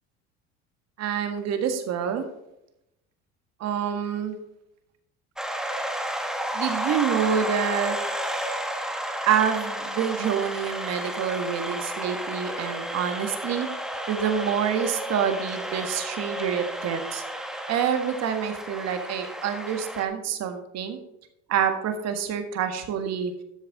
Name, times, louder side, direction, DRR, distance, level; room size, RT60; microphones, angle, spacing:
voice 1, 1.0-2.2 3.6-4.4 6.5-7.9 9.2-13.7 14.1-17.2 17.7-21.0 21.5-23.3, right 8 dB, 55° right, 7 dB, 1.7 m, -27 dB
sound 1, 5.4-20.0, right 1 dB, ahead, 1.3 m, -32 dB
12.5 x 6.8 x 4.1 m, 0.84 s
supercardioid pair, 100°, 31 cm